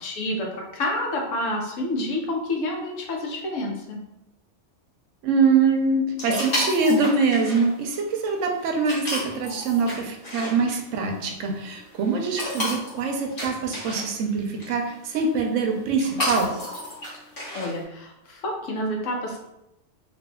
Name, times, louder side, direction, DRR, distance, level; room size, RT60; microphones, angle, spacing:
voice 1, 0.0-4.0 17.5-19.4, left 1 dB, 85° left, 0 dB, 1.1 m, -29 dB
voice 2, 5.2-16.5, right 4 dB, 90° right, 3 dB, 1.0 m, -24 dB
sound 1, 6.2-17.8, left 1 dB, 50° left, 1.4 m, -33 dB
4.2 x 2.6 x 2.2 m, 0.86 s
omnidirectional pair, 1.3 m